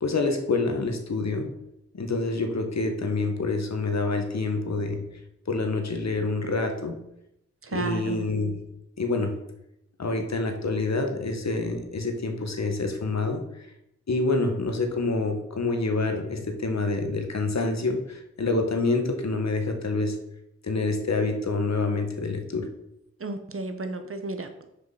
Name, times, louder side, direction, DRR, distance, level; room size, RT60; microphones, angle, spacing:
voice 1, 0.0-1.5 1.9-5.0 5.5-7.0 7.7-8.6 9.0-9.3 10.0-13.4 14.1-20.2 20.6-22.7, left 3 dB, 65° left, 5 dB, 1.5 m, -27 dB
voice 2, 7.7-8.2 23.2-24.7, right 3 dB, 50° right, 7 dB, 1.1 m, -33 dB
6.6 x 5.1 x 5.8 m, 0.82 s
cardioid pair, 45°, 29 cm